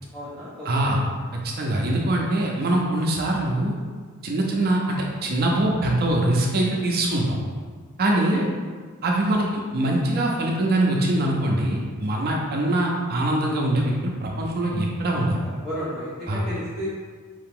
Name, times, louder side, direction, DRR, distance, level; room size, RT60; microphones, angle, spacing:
voice 1, 0.1-0.9 8.1-8.4 15.6-16.9, equal, 5° left, -13 dB, 0.9 m, -33 dB
voice 2, 0.6-1.0 1.3-3.8 4.2-5.0 5.2-7.4 8.0-8.4 9.0-15.4 16.3-16.4, right 1 dB, 45° right, -1 dB, 0.6 m, -23 dB
5.0 x 2.8 x 3.7 m, 1.6 s
head